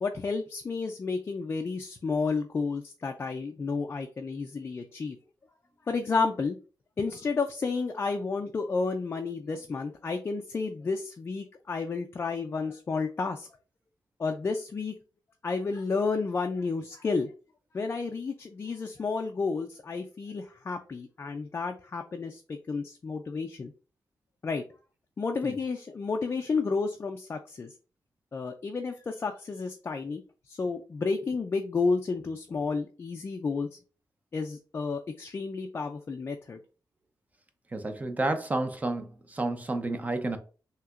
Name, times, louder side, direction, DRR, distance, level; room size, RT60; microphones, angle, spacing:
voice 1, 0.0-5.2 5.9-6.6 7.0-13.5 14.2-14.9 15.4-17.3 17.7-23.7 24.4-24.6 25.2-27.7 28.3-33.8 34.3-36.6, left 4 dB, 30° left, 0.3 m, -31 dB
voice 2, 37.7-40.4, right 2 dB, 20° right, 0.5 m, -30 dB
5.8 x 2.8 x 2.4 m
wide cardioid pair, 160°, 8 cm